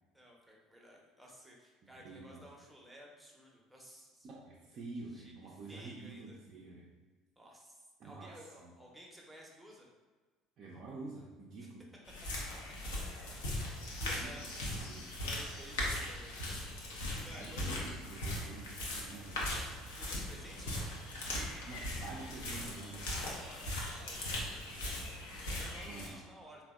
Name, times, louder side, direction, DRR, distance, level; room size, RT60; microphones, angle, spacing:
voice 1, 0.1-4.3 5.1-5.3 5.7-6.4 7.4-9.9 13.3-13.4 13.9-14.4 14.9-16.6 17.0-17.8 19.9-20.7 23.1-26.6, equal, 5° right, -2 dB, 0.6 m, -55 dB
voice 2, 1.8-2.4 4.2-6.9 8.0-8.7 10.6-11.9 14.0-15.4 17.2-19.4 21.7-23.1 25.8-26.3, right 3 dB, 50° right, -4 dB, 0.4 m, -48 dB
sound 1, 12.1-26.1, left 1 dB, 80° left, 0.6 m, -39 dB
3.3 x 2.1 x 2.3 m, 1.4 s
hypercardioid pair, 65°, 0 cm